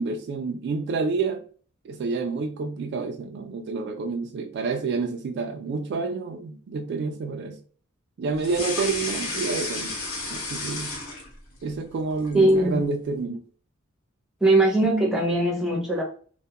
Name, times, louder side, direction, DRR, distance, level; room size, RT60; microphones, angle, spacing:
voice 1, 0.0-1.4 1.8-7.6 8.2-10.0 10.3-10.9 11.6-13.4, right 4 dB, 55° right, 0.3 m, -29 dB
sound 1, 8.4-11.6 12.0-12.7, left 2 dB, 90° left, 1.0 m, -32 dB
voice 2, 12.3-12.8 14.4-16.0, right 1 dB, 5° right, 0.7 m, -20 dB
2.3 x 2.1 x 2.7 m
head